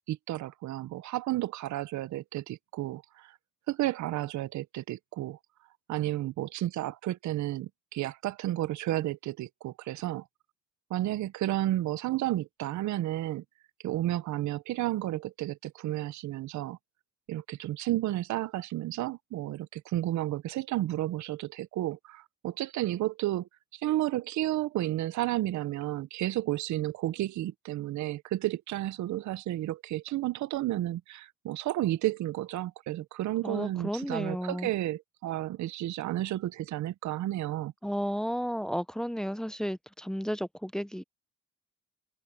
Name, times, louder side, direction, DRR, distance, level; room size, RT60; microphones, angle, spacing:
voice 1, 0.1-3.4 3.7-5.4 5.9-10.2 10.9-13.4 13.8-16.8 17.3-37.7, right 15 dB, 70° right, 0.7 m, -32 dB
voice 2, 33.4-34.7 37.8-41.0, equal, ahead, 0.8 m, -33 dB
open air
cardioid pair, 90°, 30 cm